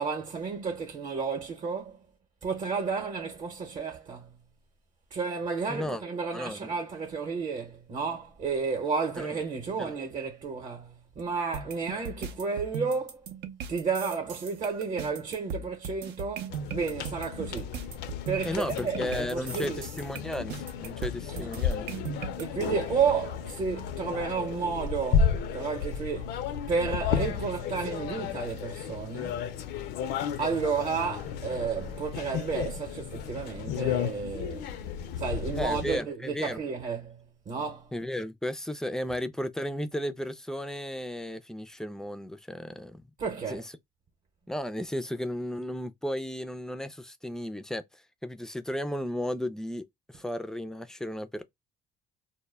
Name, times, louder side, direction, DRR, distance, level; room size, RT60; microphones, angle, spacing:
voice 1, 0.0-2.0 2.4-4.4 5.1-13.3 13.7-17.8 18.3-19.9 22.4-26.4 26.7-29.4 30.4-34.7 35.2-37.9 43.2-43.6, right 5 dB, 45° right, 0.8 m, -32 dB
voice 2, 5.7-6.0 6.3-6.7 9.2-9.4 9.8-9.9 18.4-21.9 35.5-36.6 37.9-43.0 43.5-43.7 44.5-51.4, left 1 dB, 5° left, 0.3 m, -34 dB
sound 1, 11.5-22.4, right 5 dB, 80° right, 0.6 m, -38 dB
sound 2, 16.5-36.0, left 7 dB, 80° left, 0.4 m, -33 dB
2.1 x 2.0 x 3.2 m
cardioid pair, 110°, 17 cm